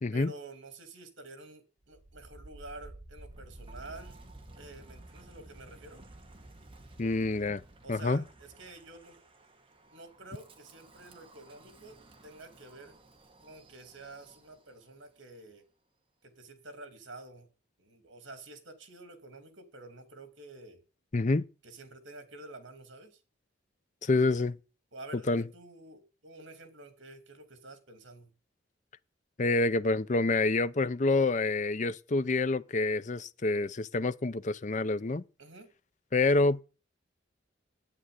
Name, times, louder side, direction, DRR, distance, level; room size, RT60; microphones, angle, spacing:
voice 1, 0.1-4.2 4.6-6.0 7.8-9.2 9.9-13.0 13.4-15.6 16.2-17.5 17.8-20.8 21.6-23.2 24.9-28.3 35.4-35.7, right 2 dB, 70° right, 2.7 m, -49 dB
Wind, 1.8-14.8, right 2 dB, 30° right, 1.6 m, -53 dB
voice 2, 7.0-7.6 7.9-8.2 21.1-21.5 24.0-24.6 25.3-25.4 29.4-35.2 36.1-36.6, left 3 dB, 40° left, 0.6 m, -27 dB
8.8 x 8.7 x 9.6 m
head